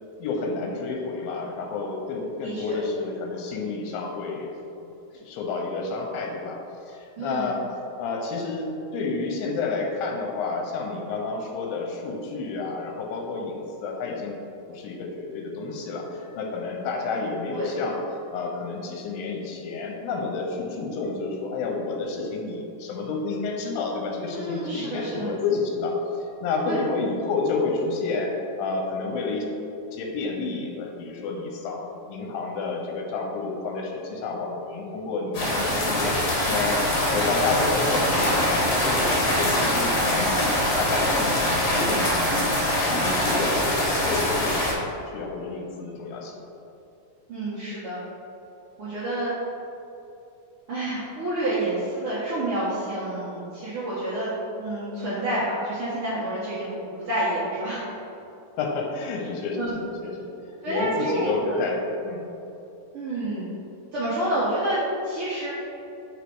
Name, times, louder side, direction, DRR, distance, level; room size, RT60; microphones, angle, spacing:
voice 1, 0.2-4.5 5.1-6.6 6.9-7.6 8.0-14.3 14.7-18.0 18.3-28.3 28.6-29.5 29.9-36.8 37.1-41.4 41.7-42.6 42.9-44.5 45.0-46.4 58.6-60.3 60.7-62.2, left 3 dB, 90° left, 1 dB, 2.4 m, -30 dB
voice 2, 2.4-2.8 7.2-7.4 17.5-17.7 24.3-25.3 26.7-26.8 47.3-48.0 48.8-49.3 50.7-54.3 54.6-56.7 57.1-57.8 59.6-59.7 60.6-61.6 62.9-63.5 63.9-64.8 65.0-65.5, right 1 dB, 85° right, -10 dB, 1.2 m, -28 dB
sound 1, 35.3-44.7, left 1 dB, 60° left, 1.6 m, -23 dB
5.1 x 4.7 x 4.6 m, 2.8 s
omnidirectional pair, 4.2 m